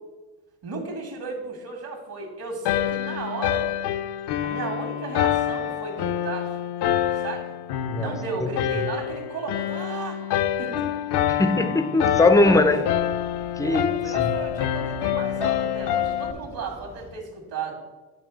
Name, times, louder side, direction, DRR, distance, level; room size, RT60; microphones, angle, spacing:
voice 1, 0.6-3.7 4.4-6.7 7.2-7.6 8.0-10.2 10.6-10.9 11.3-11.4 12.7-12.8 13.6-17.7, right 4 dB, 55° right, 3 dB, 1.8 m, -34 dB
sound 1, 2.7-16.3, left 11 dB, 70° left, 0.6 m, -26 dB
voice 2, 7.8-8.1 8.4-8.9 11.3-12.9 13.6-13.9 14.2-14.4, left 2 dB, 10° left, 10 dB, 0.5 m, -21 dB
sound 2, 12.0-17.1, right 2 dB, 85° right, 1.4 m, -46 dB
9.0 x 3.2 x 6.1 m, 1.2 s
cardioid pair, 95°, 43 cm